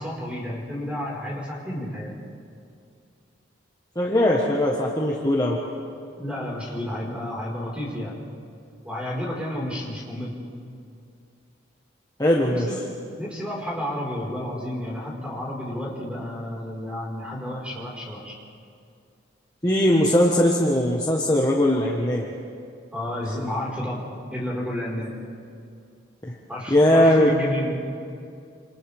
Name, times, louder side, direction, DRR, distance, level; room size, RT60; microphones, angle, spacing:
voice 1, 0.0-2.1 6.2-8.1 8.8-10.3 12.4-12.8 13.2-18.4 22.9-24.0 24.3-25.1 26.5-27.8, left 1 dB, 5° right, -4 dB, 5.1 m, -31 dB
voice 2, 3.9-5.6 12.2-12.7 19.6-22.2 26.2-26.3 26.7-27.3, left 1 dB, 20° left, -3 dB, 1.5 m, -20 dB
28.5 x 28.0 x 3.6 m, 2.4 s
head